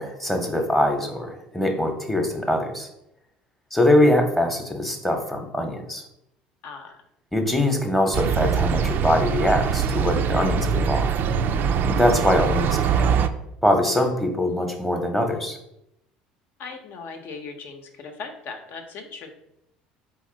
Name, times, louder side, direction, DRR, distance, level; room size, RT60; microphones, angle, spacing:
voice 1, 0.0-2.9 3.7-6.0 7.3-11.1 11.9-13.1 13.6-15.6, left 1 dB, 5° left, 4 dB, 0.9 m, -23 dB
voice 2, 6.6-7.0 16.6-19.3, left 4 dB, 55° left, 5 dB, 0.8 m, -38 dB
sound 1, 8.1-13.3, right 6 dB, 50° right, 0.4 m, -23 dB
4.1 x 2.9 x 3.8 m, 0.83 s
hypercardioid pair, 70°, 4 cm